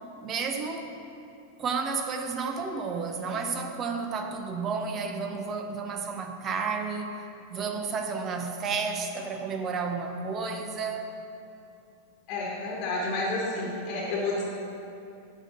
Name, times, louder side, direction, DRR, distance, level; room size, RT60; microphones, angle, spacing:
voice 1, 0.2-0.9 1.6-7.1 7.5-11.1, right 5 dB, 30° right, 5 dB, 0.8 m, -31 dB
voice 2, 12.3-14.4, left 2 dB, 40° left, -4 dB, 1.4 m, -30 dB
10.0 x 3.8 x 6.4 m, 2.7 s
figure-of-eight pair, 90°, 0 cm